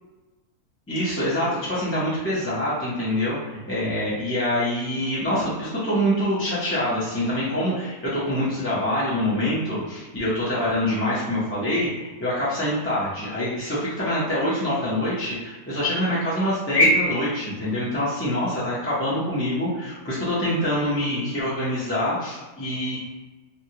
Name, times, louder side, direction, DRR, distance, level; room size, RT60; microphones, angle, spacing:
voice 1, 0.9-23.0, left 1 dB, 15° left, -9 dB, 0.4 m, -25 dB
3.3 x 2.2 x 2.8 m, 1.2 s
omnidirectional pair, 1.6 m